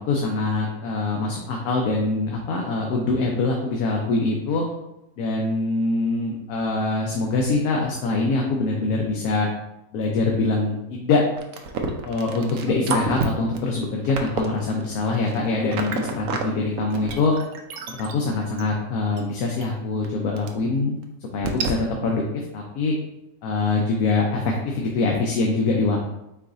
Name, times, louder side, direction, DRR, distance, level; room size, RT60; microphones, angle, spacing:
voice 1, 0.0-4.6 5.2-9.5 9.9-11.2 12.0-17.3 17.9-22.9 23.4-26.0, left 3 dB, 75° left, 0 dB, 1.1 m, -24 dB
sound 1, 11.4-16.4 16.8-18.6 19.2-19.3 19.6-19.7 20.0-20.1 20.4-20.5 21.0-21.1 21.4-21.7, right 5 dB, 70° right, 1.0 m, -29 dB
4.8 x 2.4 x 3.8 m, 0.88 s
omnidirectional pair, 1.6 m